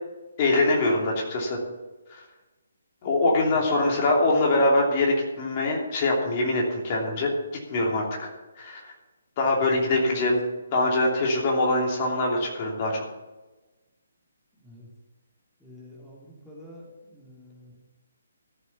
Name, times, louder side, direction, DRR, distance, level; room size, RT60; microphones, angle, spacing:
voice 1, 0.4-1.6 2.1-2.2 3.0-7.3 7.7-8.3 8.6-8.9 9.4-10.4 10.7-13.0, left 2 dB, 30° left, -1 dB, 3.0 m, -23 dB
voice 2, 15.6-17.8, left 1 dB, 5° left, -6 dB, 2.5 m, -48 dB
14.0 x 7.7 x 7.1 m, 1.1 s
figure-of-eight pair, 140°, 0 cm